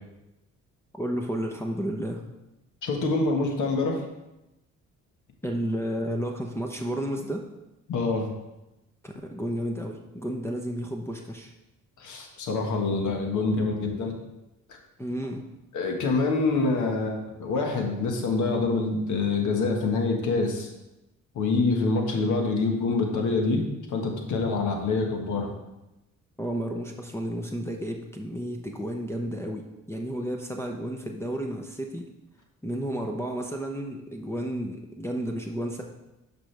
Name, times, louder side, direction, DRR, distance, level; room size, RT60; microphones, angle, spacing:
voice 1, 0.9-2.2 5.4-7.4 9.0-11.5 15.0-15.4 26.4-32.1 32.6-35.8, equal, 10° left, 2 dB, 0.8 m, -32 dB
voice 2, 2.8-4.0 7.9-8.3 12.0-14.1 15.7-20.7 21.3-23.6 23.9-25.5, left 3 dB, 75° left, 2 dB, 1.6 m, -26 dB
11.5 x 5.2 x 3.4 m, 0.95 s
cardioid pair, 90°, 30 cm